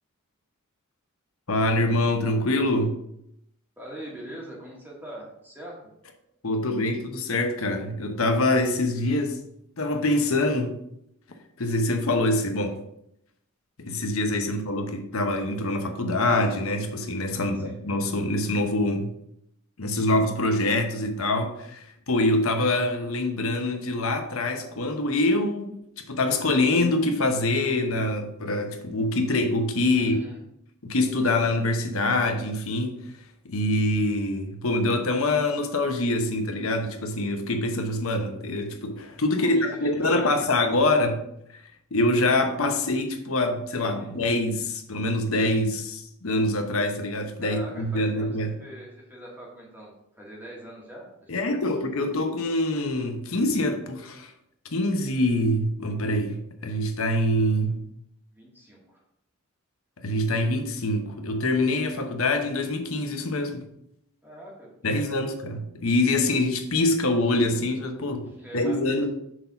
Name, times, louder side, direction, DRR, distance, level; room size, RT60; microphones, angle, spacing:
voice 1, 1.5-3.0 6.4-9.4 9.8-10.7 11.6-12.8 13.8-19.1 19.8-30.2 30.8-33.0 33.4-41.2 41.9-48.6 51.3-54.3 54.7-57.8 60.0-63.6 64.8-68.3 68.5-69.1, left 1 dB, 75° left, 5 dB, 0.9 m, -25 dB
voice 2, 3.8-5.9 14.4-14.6 17.4-17.8 29.9-30.4 39.4-40.5 44.0-44.2 47.4-51.6 58.3-59.0 64.2-65.4 68.2-69.1, equal, 10° right, -4 dB, 1.8 m, -43 dB
6.3 x 3.9 x 5.8 m, 0.76 s
head